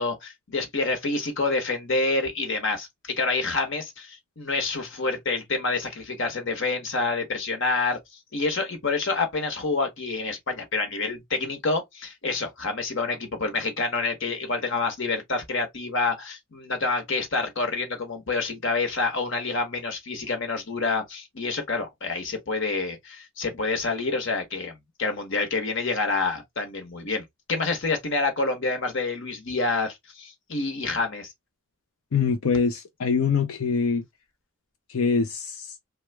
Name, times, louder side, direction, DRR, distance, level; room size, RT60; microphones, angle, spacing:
voice 1, 0.0-8.0 8.3-31.3, left 3 dB, 60° left, 1.1 m, -28 dB
voice 2, 32.1-34.0 34.9-35.7, left 5 dB, 90° left, 0.6 m, -24 dB
3.1 x 2.4 x 3.2 m
head